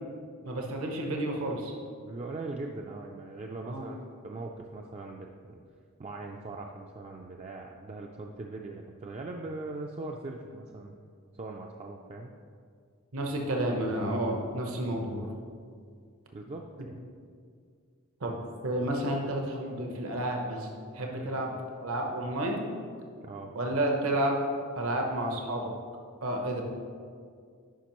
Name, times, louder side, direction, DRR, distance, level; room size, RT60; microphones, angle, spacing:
voice 1, 0.4-1.7 3.6-3.9 13.1-15.4 18.2-18.3 18.6-20.7 20.9-21.5 21.8-22.6 23.5-24.4 24.8-25.7 26.2-26.6, right 1 dB, 70° right, 1 dB, 0.9 m, -30 dB
voice 2, 2.0-4.0 4.2-5.6 6.0-10.9 11.4-12.3 16.3-17.0 18.3-18.4 21.2-21.3 23.2-23.5, right 2 dB, 30° right, 1 dB, 0.3 m, -40 dB
10.0 x 5.2 x 3.0 m, 2.2 s
head